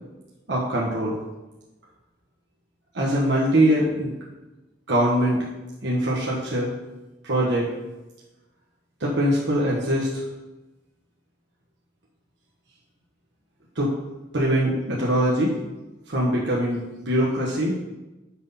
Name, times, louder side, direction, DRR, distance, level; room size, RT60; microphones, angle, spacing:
voice 1, 0.5-1.2 2.9-4.1 4.9-5.4 5.8-6.7 7.2-7.7 9.0-10.2 13.7-13.9 14.3-15.6 16.1-16.8 17.1-17.7, right 1 dB, 65° right, -4 dB, 1.2 m, -22 dB
6.2 x 5.6 x 5.6 m, 1.1 s
head